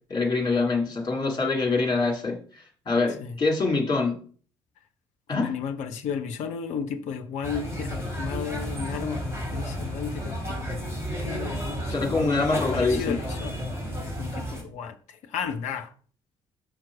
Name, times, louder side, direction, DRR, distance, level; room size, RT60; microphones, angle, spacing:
voice 1, 0.1-2.4 2.9-4.1 5.3-5.5 11.9-13.2, left 3 dB, 30° left, 2.2 m, -24 dB
voice 2, 5.3-10.8 11.2-13.6 14.2-15.9, left 7 dB, 50° left, 0.6 m, -34 dB
sound 1, 7.4-14.6, equal, 15° right, 2.9 m, -32 dB
5.9 x 5.3 x 4.7 m
figure-of-eight pair, 50°, 16 cm